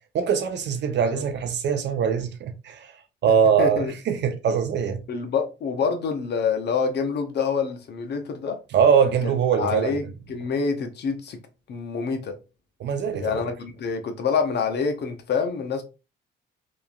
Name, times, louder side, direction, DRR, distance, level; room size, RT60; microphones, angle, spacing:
voice 1, 0.1-2.9 3.2-5.0 8.7-10.0 12.8-13.4, right 7 dB, 60° right, 0.6 m, -22 dB
voice 2, 3.6-3.9 5.1-8.6 9.6-10.0 10.3-11.4 11.7-12.3 13.2-15.8, left 5 dB, 60° left, 0.7 m, -26 dB
3.0 x 2.5 x 2.3 m
cardioid pair, 90°, 20 cm